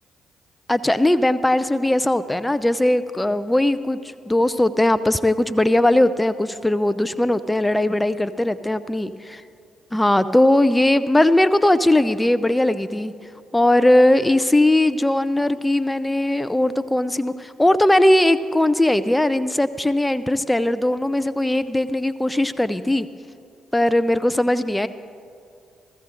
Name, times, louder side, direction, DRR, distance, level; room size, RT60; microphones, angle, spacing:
voice 1, 0.7-4.0 4.3-9.1 9.9-13.1 13.5-23.1 23.7-24.9, left 1 dB, 10° left, 13 dB, 0.5 m, -19 dB
15.0 x 14.5 x 3.8 m, 2.4 s
hypercardioid pair, 45°, 0 cm